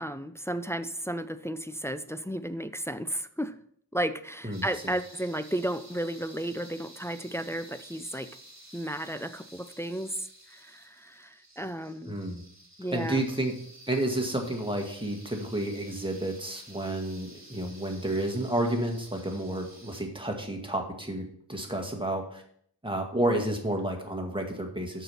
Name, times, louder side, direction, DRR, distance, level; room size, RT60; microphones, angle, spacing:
voice 1, 0.0-3.5 3.9-8.3 8.7-12.2 12.8-13.2, right 1 dB, 5° left, 10 dB, 0.5 m, -33 dB
sound 1, 4.5-20.0, right 1 dB, 40° right, 2.0 m, -52 dB
voice 2, 12.1-12.4 12.9-13.5 13.9-22.4 22.8-25.0, right 1 dB, 10° right, 2 dB, 1.8 m, -31 dB
6.7 x 6.0 x 5.6 m, 0.65 s
wide cardioid pair, 45°, 42 cm